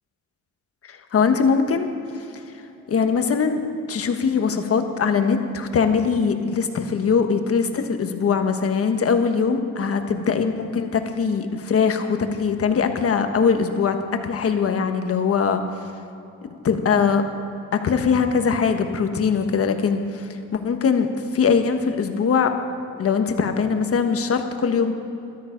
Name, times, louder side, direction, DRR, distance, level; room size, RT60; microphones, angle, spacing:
voice 1, 0.8-1.9 2.1-2.2 2.9-3.6 3.9-14.0 14.2-15.6 16.6-17.2 17.8-22.5 23.0-24.9, left 6 dB, 50° left, 6 dB, 1.3 m, -21 dB
13.0 x 13.0 x 5.2 m, 2.9 s
cardioid pair, 90°, 30 cm